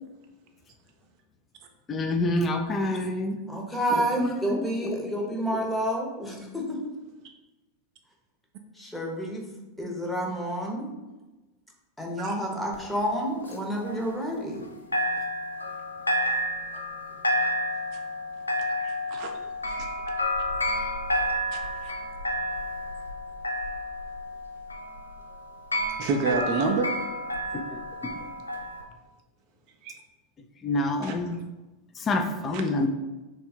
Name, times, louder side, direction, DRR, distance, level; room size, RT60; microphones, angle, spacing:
voice 1, 1.9-3.4 4.2-4.3 27.5-27.6 28.0-28.1 30.6-31.4 32.1-32.9, left 2 dB, 25° left, 6 dB, 0.4 m, -26 dB
voice 2, 3.5-6.9 8.7-9.4 9.8-10.9 12.0-14.7, equal, 5° left, -1 dB, 0.9 m, -29 dB
sound 1, 12.7-14.7 14.9-28.8, equal, 85° left, 0.4 m, -30 dB
voice 3, 18.8-19.3 19.6-19.7 21.5-21.9 26.0-26.9 29.8-30.0 31.0-31.2 32.5-32.6, right 4 dB, 45° right, 4 dB, 0.4 m, -29 dB
3.4 x 2.3 x 4.3 m, 1.1 s
figure-of-eight pair, 90°, 0 cm